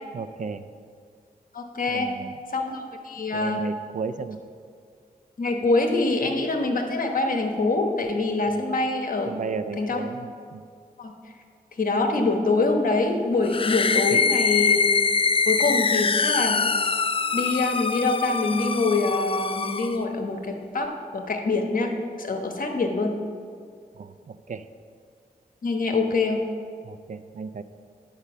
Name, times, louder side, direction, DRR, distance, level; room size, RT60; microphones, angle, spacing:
voice 1, 0.1-0.6 1.9-2.4 3.3-4.4 8.5-8.7 9.3-10.6 14.1-14.2 24.0-24.7 26.8-27.6, right 5 dB, 55° right, 12 dB, 0.4 m, -34 dB
voice 2, 1.5-2.1 2.5-3.7 5.4-9.3 9.8-10.0 11.0-11.1 11.8-14.8 15.5-16.6 17.3-21.9 22.2-23.1 25.6-26.4, left 3 dB, 60° left, 4 dB, 1.1 m, -25 dB
sound 1, 13.4-20.0, left 5 dB, 35° left, 0.4 m, -24 dB
9.9 x 5.3 x 7.2 m, 2.2 s
wide cardioid pair, 85°, 16 cm